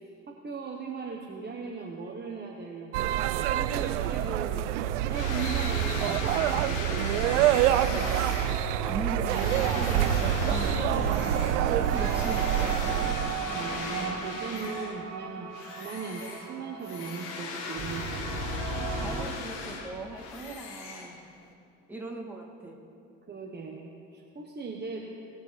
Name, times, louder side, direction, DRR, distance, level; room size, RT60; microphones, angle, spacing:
voice 1, 0.3-4.6 5.0-7.6 13.5-18.1 23.3-25.1, right 5 dB, 25° right, -1 dB, 1.3 m, -38 dB
sound 1, 2.9-13.3, right 12 dB, 80° right, 0.5 m, -27 dB
sound 2, 5.1-15.2 15.5-21.5, left 4 dB, 65° left, 1.3 m, -38 dB
sound 3, 7.1-19.3, right 5 dB, 50° right, 1.4 m, -35 dB
voice 2, 8.8-13.1 18.7-21.3 21.9-22.8, right 2 dB, 5° right, -2 dB, 2.5 m, -39 dB
19.5 x 6.6 x 3.4 m, 2.5 s
hypercardioid pair, 60°, 36 cm